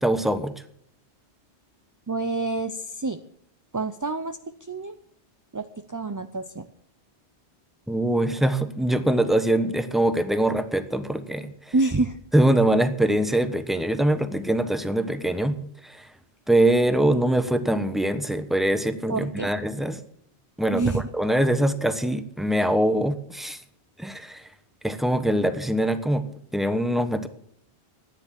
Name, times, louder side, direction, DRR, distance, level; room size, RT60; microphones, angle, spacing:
voice 1, 0.0-0.5 7.9-11.7 12.3-15.6 15.8-16.1 16.5-20.0 20.6-23.6 24.0-24.5 24.8-26.2 26.5-27.3, right 1 dB, ahead, 10 dB, 1.0 m, -23 dB
voice 2, 2.1-3.2 3.7-4.4 4.7-4.9 5.5-6.6 11.7-12.2 19.1-19.5 20.7-21.0, right 3 dB, 25° right, 9 dB, 0.4 m, -27 dB
14.0 x 9.8 x 7.5 m, 0.66 s
omnidirectional pair, 1.1 m